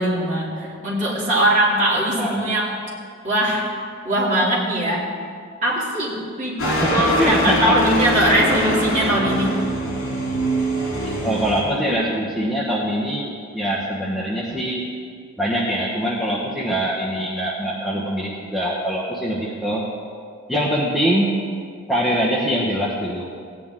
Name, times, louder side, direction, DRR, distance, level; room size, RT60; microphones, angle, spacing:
voice 1, 0.0-2.7 3.2-3.7 4.0-5.1 5.6-9.5, right 1 dB, 40° right, -6 dB, 3.0 m, -21 dB
voice 2, 0.5-0.9 2.2-2.5 6.6-7.8 11.2-14.8 15.4-19.8 20.5-21.3 21.9-23.3, equal, ahead, -6 dB, 1.1 m, -23 dB
sound 1, 6.6-11.6, equal, 75° left, 3.0 m, -23 dB
16.5 x 9.6 x 3.7 m, 2.1 s
head